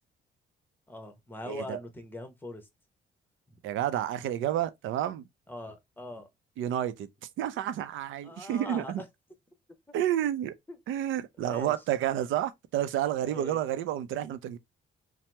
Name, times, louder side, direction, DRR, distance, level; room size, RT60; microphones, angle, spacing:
voice 1, 0.9-2.7 5.5-6.3 8.2-8.9 10.7-11.0 11.4-11.7 13.2-13.6, left 1 dB, 10° left, 0.8 m, -42 dB
voice 2, 1.5-1.8 3.6-5.3 6.6-7.1 7.4-9.0 9.9-10.5 10.9-14.6, right 11 dB, 80° right, 0.5 m, -30 dB
2.8 x 2.0 x 3.2 m
cardioid pair, 90°, 20 cm